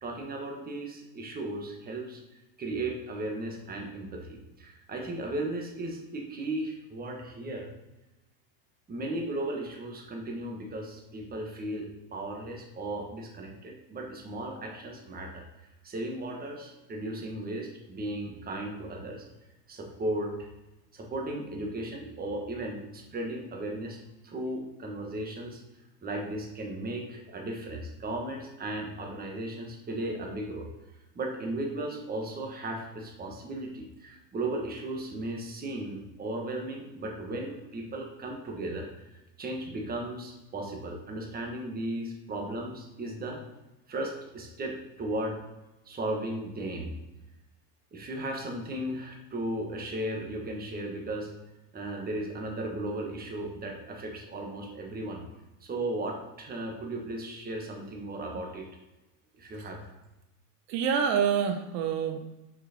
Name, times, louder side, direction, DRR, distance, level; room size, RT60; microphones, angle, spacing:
voice 1, 0.0-2.2 2.6-7.7 8.9-15.4 15.8-19.2 19.7-20.5 20.9-25.6 26.0-30.7 31.1-43.4 43.9-45.4 45.8-47.0 47.9-51.3 51.7-55.2 55.6-58.7 59.3-59.8, right 1 dB, 20° right, 1 dB, 1.3 m, -36 dB
voice 2, 60.7-62.2, right 7 dB, 80° right, 6 dB, 1.1 m, -26 dB
6.3 x 5.9 x 4.2 m, 0.99 s
supercardioid pair, 140°, 48 cm